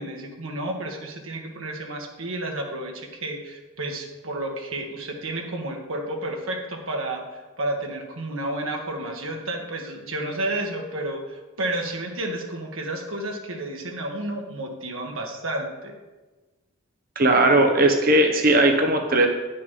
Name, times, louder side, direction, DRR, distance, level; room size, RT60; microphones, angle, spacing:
voice 1, 0.0-16.0, right 1 dB, 80° right, 1 dB, 1.6 m, -31 dB
voice 2, 17.2-19.3, right 2 dB, 45° right, 4 dB, 0.9 m, -18 dB
9.9 x 6.5 x 5.5 m, 1.2 s
head